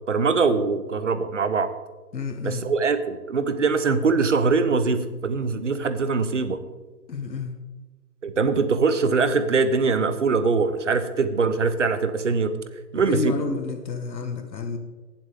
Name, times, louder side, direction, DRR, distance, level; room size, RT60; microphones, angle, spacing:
voice 1, 0.1-1.7 2.4-6.6 8.2-12.5 12.9-13.4, right 4 dB, 45° right, 11 dB, 1.0 m, -22 dB
voice 2, 2.1-2.7 7.1-7.6 12.9-14.8, left 4 dB, 85° left, 6 dB, 1.8 m, -30 dB
19.5 x 7.4 x 3.7 m, 1.2 s
hypercardioid pair, 180°, 49 cm